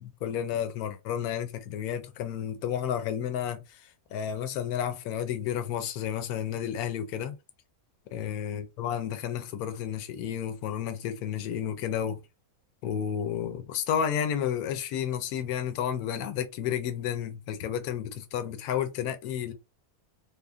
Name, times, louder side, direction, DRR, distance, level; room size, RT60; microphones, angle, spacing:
voice 1, 0.0-7.4 8.1-12.2 12.8-19.5, left 9 dB, 80° left, 1.1 m, -31 dB
3.4 x 2.1 x 3.5 m
omnidirectional pair, 1.6 m